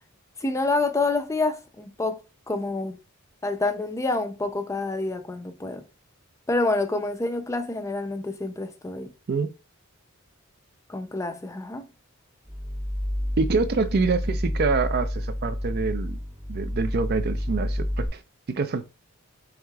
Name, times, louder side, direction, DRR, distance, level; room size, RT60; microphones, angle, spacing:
voice 1, 0.4-2.2 2.5-3.0 3.4-5.8 6.5-9.1 10.9-11.9, left 2 dB, 15° left, 0.4 m, -27 dB
sound 1, 12.4-18.1, equal, 25° right, 1.0 m, -29 dB
voice 2, 13.4-16.2 16.5-18.2 18.5-18.8, right 4 dB, 45° right, 0.4 m, -26 dB
4.7 x 3.6 x 2.3 m
head